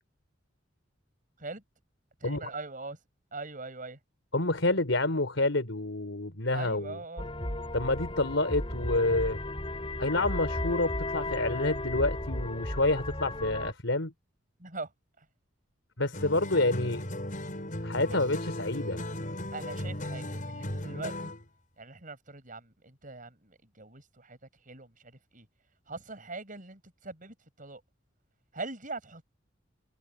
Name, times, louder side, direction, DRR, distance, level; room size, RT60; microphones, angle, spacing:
voice 1, 2.2-3.0 3.3-4.0 6.5-7.3 14.6-14.9 15.2-15.3 18.1-18.2 19.5-21.3 21.8-24.4 24.7-25.5 25.9-27.8 28.5-29.3, right 3 dB, 45° right, 7.5 m, -42 dB
voice 2, 4.3-7.0 7.7-9.4 10.0-14.1 16.0-17.1 17.8-19.0, left 2 dB, 85° left, 3.8 m, -28 dB
sound 1, 7.2-13.7, left 1 dB, 30° left, 5.4 m, -34 dB
sound 2, 16.1-21.5, left 1 dB, 45° left, 7.1 m, -36 dB
head